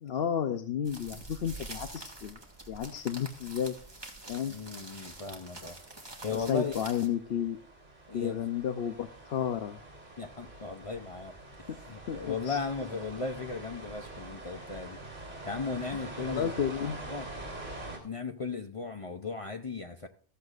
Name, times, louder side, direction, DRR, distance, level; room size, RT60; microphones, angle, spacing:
voice 1, 0.0-2.4 2.7-3.8 4.3-4.5 6.3-7.6 8.1-9.8 11.7-11.8 12.1-12.6 16.3-17.0, left 8 dB, 60° left, 8 dB, 0.8 m, -32 dB
sound 1, 0.8-7.1, right 2 dB, 20° right, 1.6 m, -46 dB
sound 2, 1.9-18.0, right 2 dB, 40° right, 3.1 m, -46 dB
voice 2, 4.4-5.8 6.2-6.8 8.1-8.4 10.2-15.0 15.4-17.3 18.0-20.1, left 4 dB, 40° left, 6 dB, 0.5 m, -37 dB
14.5 x 14.0 x 2.5 m, 0.42 s
omnidirectional pair, 1.3 m